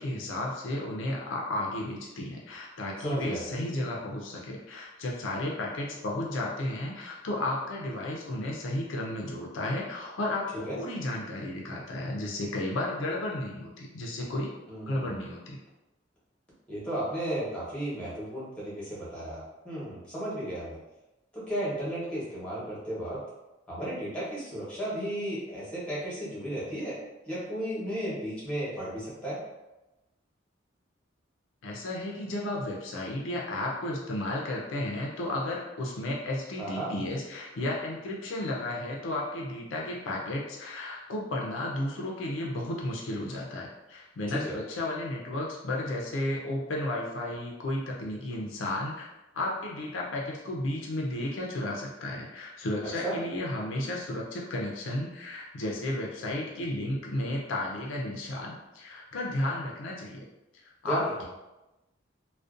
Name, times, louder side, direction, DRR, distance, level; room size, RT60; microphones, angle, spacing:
voice 1, 0.0-14.5 14.9-15.6 31.6-49.1 49.3-60.2 60.8-61.2, left 1 dB, 75° left, -2 dB, 0.4 m, -33 dB
voice 2, 3.0-3.4 10.6-10.8 14.7-15.2 16.7-20.8 21.3-23.2 23.7-27.0 27.3-29.4 36.6-36.9 44.3-44.6 53.0-53.1 60.8-61.2, right 1 dB, 5° left, -8 dB, 0.9 m, -34 dB
2.5 x 2.1 x 2.4 m, 1.0 s
head